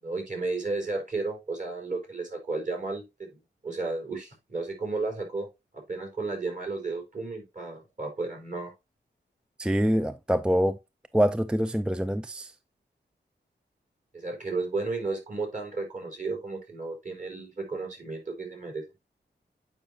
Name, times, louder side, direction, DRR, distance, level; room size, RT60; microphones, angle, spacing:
voice 1, 0.0-3.3 3.6-5.5 5.7-8.7 14.1-18.8, right 3 dB, 45° right, 3.9 m, -33 dB
voice 2, 9.6-10.8 11.1-12.5, equal, 5° right, 0.4 m, -25 dB
8.7 x 5.6 x 2.7 m
wide cardioid pair, 105°, 19 cm